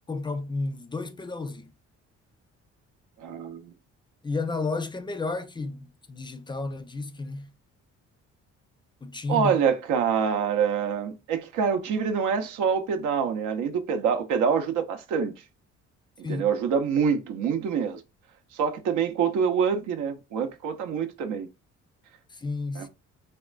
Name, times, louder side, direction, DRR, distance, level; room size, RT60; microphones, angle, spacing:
voice 1, 0.1-1.7 4.2-7.5 9.0-9.6 16.2-16.5 22.3-22.9, left 3 dB, 15° left, 0.3 m, -32 dB
voice 2, 3.2-3.7 9.3-15.3 16.2-18.0 18.5-21.5 22.8-22.9, right 6 dB, 85° right, 0.6 m, -26 dB
3.6 x 2.2 x 2.4 m
cardioid pair, 90°, 30 cm